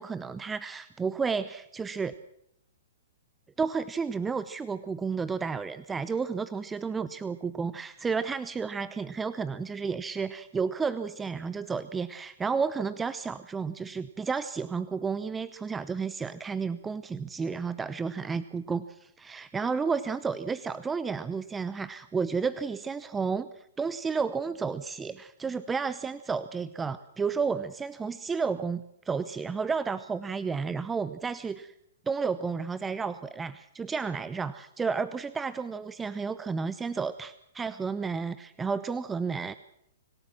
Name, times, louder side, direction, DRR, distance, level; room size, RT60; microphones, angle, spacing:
voice 1, 0.0-2.1 3.6-31.7 32.1-39.5, right 5 dB, 15° right, 14 dB, 0.7 m, -32 dB
26.0 x 17.5 x 6.0 m, 0.76 s
hypercardioid pair, 120°, 0 cm